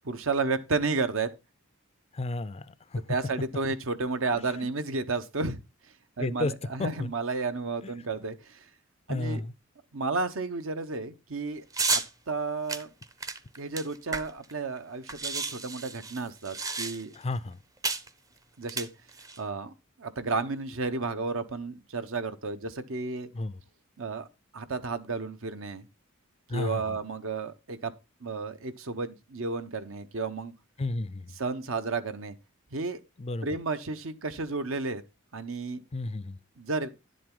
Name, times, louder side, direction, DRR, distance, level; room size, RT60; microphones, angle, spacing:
voice 1, 0.0-1.3 3.1-5.6 6.2-8.7 9.1-9.4 9.9-11.6 11.9-12.9 13.6-17.1 18.6-18.9 19.4-23.3 24.0-24.3 24.5-25.9 26.5-27.9 28.2-30.5 31.4-32.3 32.7-33.0 33.4-35.0 35.3-35.8 36.6-36.9, right 3 dB, 70° right, 1.0 m, -32 dB
voice 2, 2.1-3.0 6.2-6.5 6.8-7.1 9.1-9.5 17.2-17.6 23.3-23.6 26.5-26.8 30.8-31.3 33.2-33.5 35.9-36.4, left 2 dB, 30° left, 0.4 m, -32 dB
sound 1, 11.7-12.1 12.7-14.5 14.8-14.9 15.1-17.2 17.8-18.1 18.6-19.4, right 4 dB, 15° right, 0.6 m, -32 dB
10.5 x 7.6 x 3.8 m
head